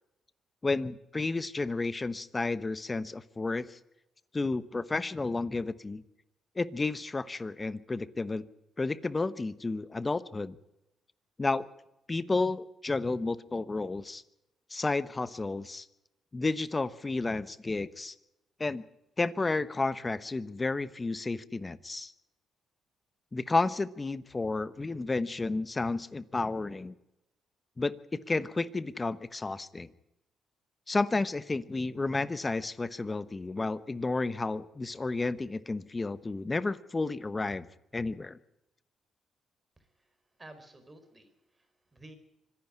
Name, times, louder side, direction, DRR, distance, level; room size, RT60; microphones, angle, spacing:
voice 1, 0.6-3.8 4.3-6.0 6.6-8.5 8.8-10.6 11.4-11.7 12.1-14.2 14.7-15.9 16.3-18.1 18.6-18.8 19.2-22.1 23.3-26.9 27.8-29.9 30.9-37.7 37.9-38.4, left 3 dB, 25° left, 15 dB, 1.1 m, -31 dB
voice 2, 39.8-42.2, right 1 dB, 20° right, 9 dB, 4.4 m, -54 dB
25.5 x 11.0 x 9.9 m, 0.90 s
cardioid pair, 90°, 0 cm